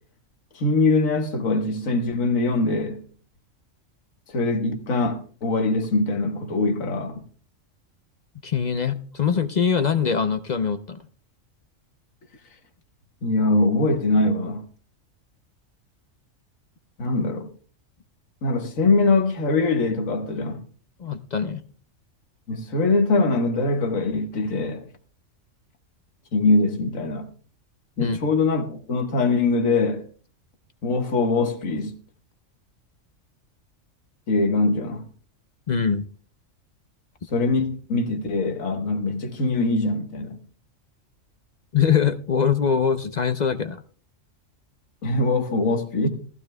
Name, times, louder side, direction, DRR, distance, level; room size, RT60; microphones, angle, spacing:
voice 1, 0.5-3.0 4.3-7.2 13.2-14.6 17.0-17.5 18.4-20.6 22.5-24.9 26.3-27.3 28.0-30.0 30.8-31.9 34.3-35.1 37.3-40.4 45.0-46.1, left 3 dB, 80° left, 1.8 m, -22 dB
voice 2, 8.4-11.0 21.0-21.6 28.0-28.2 35.7-36.0 41.7-43.8, left 7 dB, 50° left, 0.5 m, -23 dB
19.0 x 14.5 x 2.2 m
omnidirectional pair, 1.4 m